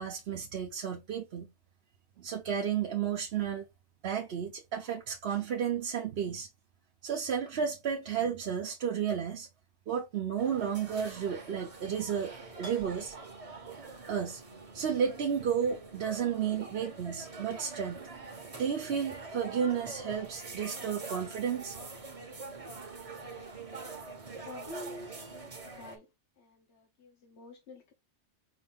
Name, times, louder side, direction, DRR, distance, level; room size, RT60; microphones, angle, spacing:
voice 1, 0.0-1.5 2.2-3.7 4.0-6.5 7.0-9.5 9.9-13.1 14.1-14.4 14.7-18.1 18.6-21.8, right 7 dB, 65° right, 0.9 m, -32 dB
sound 1, 10.4-26.0, right 3 dB, 35° right, 0.9 m, -45 dB
voice 2, 24.5-26.1 26.4-27.9, left 1 dB, 70° left, 1.3 m, -48 dB
4.8 x 2.6 x 3.6 m
omnidirectional pair, 1.2 m